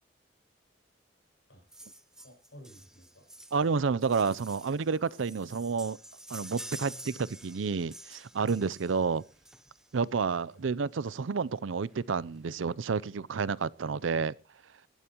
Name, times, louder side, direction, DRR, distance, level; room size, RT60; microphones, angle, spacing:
sound 1, 1.7-10.0 11.1-11.2 11.5-11.6 11.9-12.0 12.4-13.0 13.5-13.6, right 1 dB, 5° right, 0.6 m, -49 dB
voice 1, 2.2-3.3 6.8-7.5 8.4-8.6 10.5-10.7 14.1-14.3, equal, 65° left, 6.5 m, -54 dB
voice 2, 3.5-6.0 6.3-6.9 7.4-9.2 9.9-14.3, right 5 dB, 80° right, 0.5 m, -30 dB
18.0 x 12.5 x 3.0 m
head